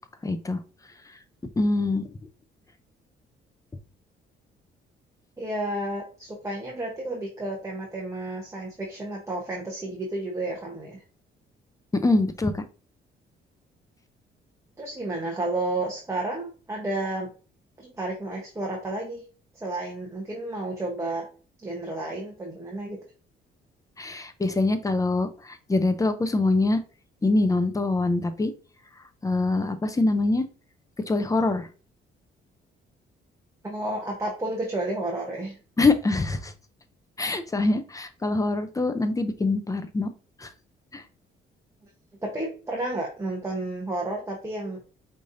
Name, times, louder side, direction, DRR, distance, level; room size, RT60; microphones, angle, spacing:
voice 1, 0.2-0.6 1.6-2.1 12.0-12.6 24.0-26.8 27.2-28.5 29.2-30.4 31.1-31.7 35.8-36.5 37.2-40.1 40.4-40.5 40.9-41.0, left 2 dB, 15° left, 10 dB, 0.6 m, -24 dB
voice 2, 5.4-11.0 14.8-17.3 17.8-19.2 19.5-21.3 21.6-23.0 33.6-35.6 42.2-44.8, right 2 dB, 15° right, -1 dB, 1.0 m, -31 dB
5.1 x 3.2 x 2.6 m, 0.36 s
cardioid pair, 90°, 20 cm